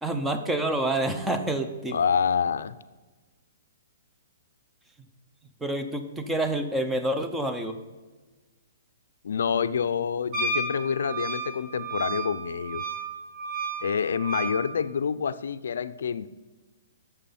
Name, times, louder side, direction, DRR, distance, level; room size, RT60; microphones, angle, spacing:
voice 1, 0.0-2.0 5.6-7.7, right 1 dB, 5° right, 7 dB, 0.7 m, -28 dB
voice 2, 1.9-2.8 9.2-12.8 13.8-16.3, left 7 dB, 75° left, 14 dB, 0.5 m, -27 dB
Wind instrument woodwind instrument, 10.3-14.6, right 4 dB, 30° right, 1.6 m, -32 dB
8.9 x 6.9 x 4.3 m, 1.3 s
hypercardioid pair, 145°, 0 cm